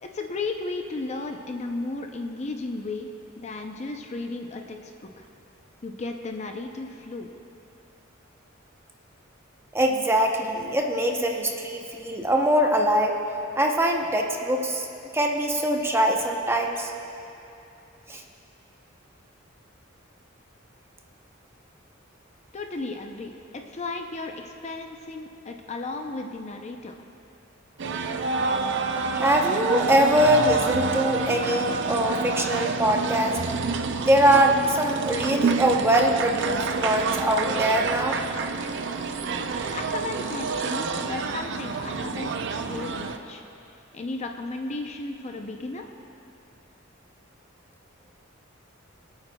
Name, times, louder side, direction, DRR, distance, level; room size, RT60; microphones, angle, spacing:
voice 1, 0.0-3.1 3.4-5.3 5.8-7.3 22.5-27.0 39.7-43.4 43.9-45.9, left 3 dB, 35° left, 4 dB, 0.5 m, -34 dB
voice 2, 9.7-13.2 13.6-14.9 15.1-16.9 18.1-18.2 29.1-33.4 34.0-38.2, right 1 dB, 10° right, 2 dB, 0.7 m, -23 dB
sound 1, 27.8-43.2, right 4 dB, 60° right, 0.5 m, -28 dB
23.0 x 8.8 x 2.2 m, 2.7 s
head